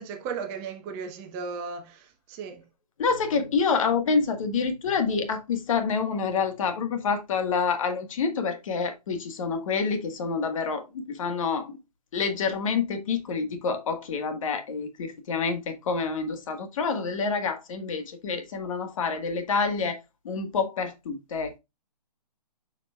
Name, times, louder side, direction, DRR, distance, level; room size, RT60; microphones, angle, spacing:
voice 1, 0.0-2.6, right 5 dB, 25° right, 1.2 m, -36 dB
voice 2, 3.0-11.7 12.1-20.0 20.2-21.6, left 5 dB, 50° left, 1.6 m, -27 dB
7.1 x 5.9 x 2.4 m
hypercardioid pair, 150°, 21 cm